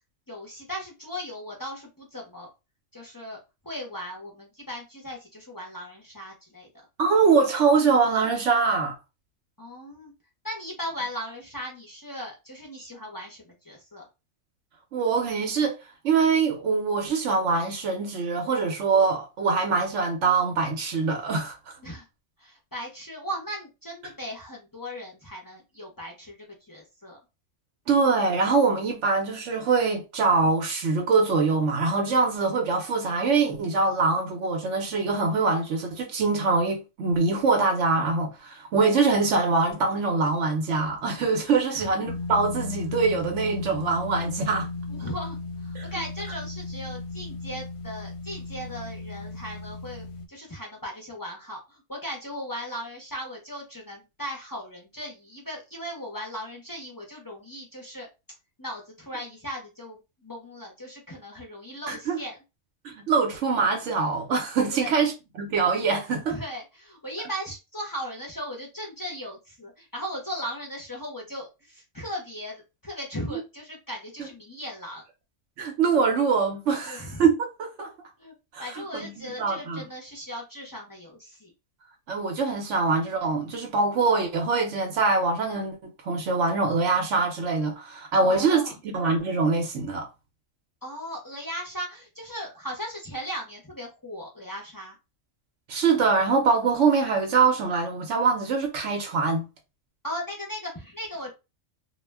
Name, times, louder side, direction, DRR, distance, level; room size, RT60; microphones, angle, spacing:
voice 1, 0.3-2.5 2.9-3.4 3.6-6.7 9.6-10.1 10.4-14.0 21.8-22.1 22.4-27.2 41.7-41.9 44.9-58.1 58.6-62.4 64.7-65.0 66.3-75.0 76.8-77.3 78.2-78.3 78.6-81.5 88.2-88.7 90.8-95.0 100.0-101.3, equal, 25° left, 0.5 m, -37 dB
voice 2, 7.0-9.0 14.9-15.8 16.0-21.8 27.9-44.7 45.7-45.9 61.9-62.2 62.8-65.1 65.4-66.4 75.6-77.9 78.5-79.8 82.1-90.1 95.7-99.4, right 4 dB, 70° right, 1.0 m, -24 dB
sound 1, 42.1-50.3, left 3 dB, 65° left, 0.8 m, -35 dB
2.3 x 2.1 x 3.3 m
omnidirectional pair, 1.3 m